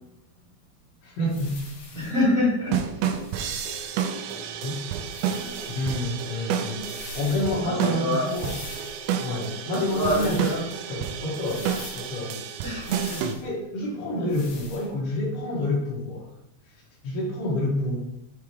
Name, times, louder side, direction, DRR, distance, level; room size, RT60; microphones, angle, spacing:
voice 1, 1.0-1.6 4.6-4.8 5.8-6.8 7.2-8.5 9.1-10.4 10.9-12.5 13.4-16.3 17.0-18.0, left 1 dB, 75° left, -7 dB, 3.6 m, -28 dB
sound 1, 1.3-2.2 3.1-4.1 5.0-5.9 6.7-7.5 8.2-9.1 9.8-10.6 11.4-12.1 12.8-13.5 14.3-14.9, left 3 dB, 90° left, 4.3 m, -42 dB
voice 2, 1.9-2.8 4.4-4.5 5.4-5.6 7.6-8.3 9.7-10.7 12.6-13.3, left 1 dB, 55° right, -9 dB, 0.9 m, -26 dB
sound 2, 2.7-13.3, right 8 dB, 90° right, 3.2 m, -30 dB
8.8 x 3.5 x 3.1 m, 0.79 s
omnidirectional pair, 5.8 m